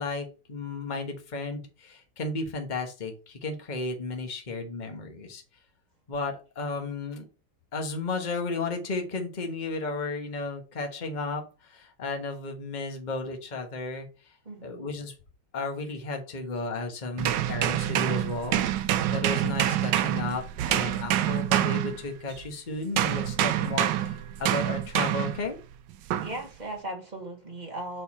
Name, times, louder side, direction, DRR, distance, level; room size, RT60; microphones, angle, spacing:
voice 1, 0.0-5.4 6.1-7.2 7.7-14.1 14.6-15.1 15.5-18.6 19.1-25.6, left 3 dB, 30° left, 1.2 m, -33 dB
voice 2, 14.4-14.8 26.2-28.0, right 1 dB, 25° right, 1.3 m, -37 dB
sound 1, 17.2-22.5 23.0-25.5 26.1-26.4, right 12 dB, 85° right, 1.3 m, -26 dB
6.7 x 4.6 x 4.2 m
omnidirectional pair, 1.9 m